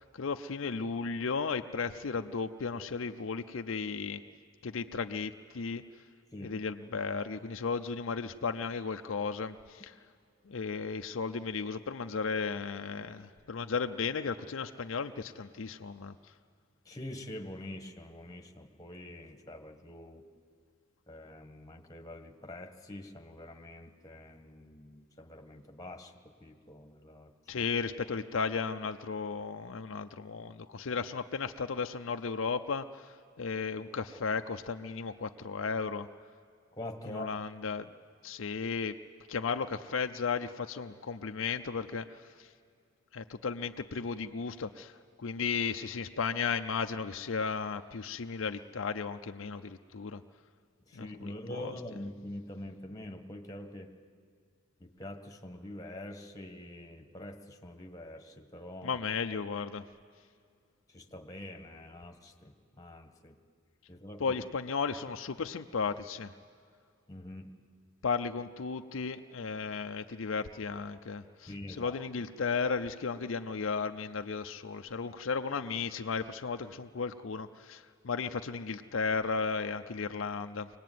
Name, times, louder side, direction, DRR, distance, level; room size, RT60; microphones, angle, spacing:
voice 1, 0.0-4.2 4.6-5.8 6.4-9.9 10.5-16.1 27.5-36.1 37.1-37.9 38.2-38.9 39.3-42.5 43.1-50.2 50.9-51.7 58.8-59.8 64.2-66.3 68.0-71.5 71.8-80.7, left 5 dB, 70° left, 7 dB, 0.6 m, -35 dB
voice 2, 6.3-6.6 16.8-20.2 21.1-27.6 36.7-37.3 50.9-54.0 54.8-59.0 60.9-63.4 63.9-64.4 67.1-67.5 71.5-72.0, left 1 dB, 15° left, 4 dB, 1.4 m, -45 dB
24.0 x 19.0 x 9.3 m, 2.2 s
head